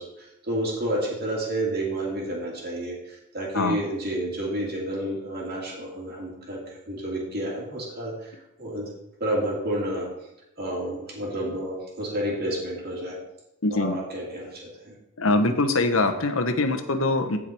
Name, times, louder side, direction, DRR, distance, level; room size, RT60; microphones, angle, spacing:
voice 1, 0.0-8.9 9.2-10.1 10.6-13.2 13.7-14.9, right 1 dB, 45° right, -4 dB, 2.6 m, -30 dB
voice 2, 13.6-13.9 15.2-17.4, left 2 dB, 70° left, 8 dB, 1.1 m, -23 dB
15.0 x 5.0 x 4.5 m, 0.88 s
head